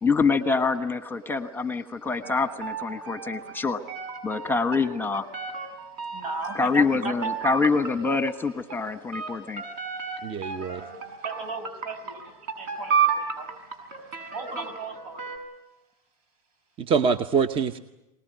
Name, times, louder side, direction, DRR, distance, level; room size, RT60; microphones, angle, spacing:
voice 1, 0.0-3.8 4.2-5.3 6.5-9.6, left 4 dB, 10° left, 9 dB, 1.2 m, -25 dB
sound 1, 2.2-6.8 7.0-15.4, right 6 dB, 50° right, 7.5 m, -32 dB
voice 2, 6.1-7.1 9.5-9.6 9.9-10.0 10.5-13.6 14.3-15.2, right 4 dB, 70° right, 9 dB, 6.3 m, -37 dB
voice 3, 10.2-10.8 16.8-17.8, right 6 dB, 25° right, 11 dB, 0.9 m, -24 dB
24.5 x 19.5 x 9.4 m, 0.99 s
hypercardioid pair, 120°, 20 cm